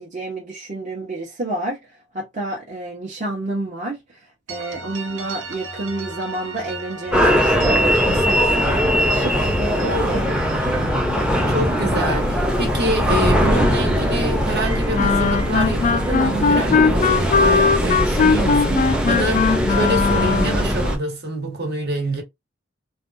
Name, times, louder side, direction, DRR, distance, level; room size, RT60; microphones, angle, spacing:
voice 1, 0.0-1.8 2.1-4.2 4.5-10.4 10.7-11.1, right 2 dB, 40° right, 1.0 m, -30 dB
sound 1, 4.5-13.2 13.5-17.6, right 3 dB, 85° right, 0.8 m, -37 dB
sound 2, 7.1-21.0, equal, 5° right, 0.6 m, -20 dB
voice 2, 9.8-10.2 11.5-22.2, right 1 dB, 60° right, 1.3 m, -26 dB
Wind instrument woodwind instrument, 14.9-20.7, left 5 dB, 40° left, 0.3 m, -19 dB
3.4 x 2.3 x 2.6 m
head